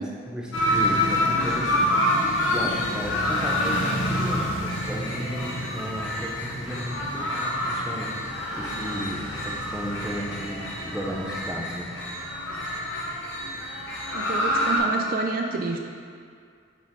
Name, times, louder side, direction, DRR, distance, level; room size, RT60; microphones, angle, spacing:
voice 1, 0.0-11.9, equal, 5° right, -3 dB, 0.7 m, -34 dB
sound 1, 0.5-14.8, left 1 dB, 75° left, 1.1 m, -27 dB
voice 2, 14.1-15.8, right 4 dB, 45° right, 3 dB, 0.3 m, -29 dB
7.4 x 5.0 x 3.7 m, 2.3 s
head